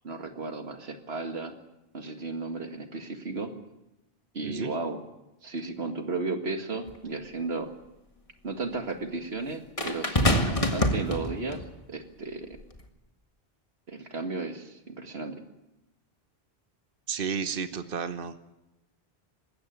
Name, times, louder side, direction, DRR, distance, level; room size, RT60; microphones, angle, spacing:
voice 1, 0.0-1.5 1.9-3.5 4.3-5.0 5.4-7.7 8.4-11.6 11.9-12.5 13.9-15.4, right 3 dB, 90° right, 6 dB, 2.2 m, -34 dB
sound 1, 6.9-7.0 9.8-11.7 12.6-12.8, left 1 dB, 35° left, 1.9 m, -26 dB
voice 2, 17.1-18.3, right 6 dB, 60° right, 10 dB, 1.3 m, -32 dB
20.5 x 16.0 x 9.5 m, 0.93 s
omnidirectional pair, 1.0 m